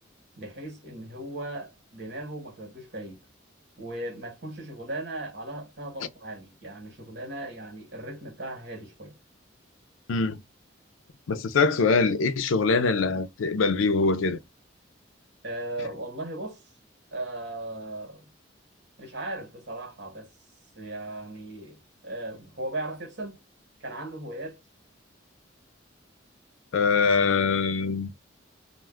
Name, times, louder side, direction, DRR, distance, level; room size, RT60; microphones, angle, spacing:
voice 1, 0.4-3.2 3.8-9.1 15.4-16.6 17.1-18.3 19.0-20.3 20.7-23.4 23.8-24.6, right 1 dB, 60° right, 1.1 m, -37 dB
voice 2, 10.1-10.4 11.3-14.4 26.7-28.1, left 4 dB, 90° left, 0.4 m, -23 dB
2.5 x 2.2 x 3.4 m
head